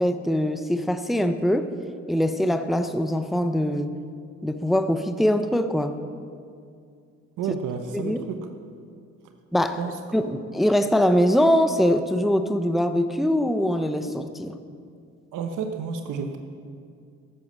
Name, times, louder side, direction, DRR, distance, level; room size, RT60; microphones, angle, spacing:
voice 1, 0.0-1.7 2.1-4.0 4.4-6.0 7.9-8.3 9.5-9.8 10.1-14.6, equal, ahead, 9 dB, 0.6 m, -23 dB
voice 2, 7.4-8.5 9.8-10.0 10.2-10.4 15.3-16.4, right 6 dB, 85° right, 6 dB, 1.0 m, -31 dB
13.0 x 8.3 x 7.5 m, 2.3 s
cardioid pair, 90°, 30 cm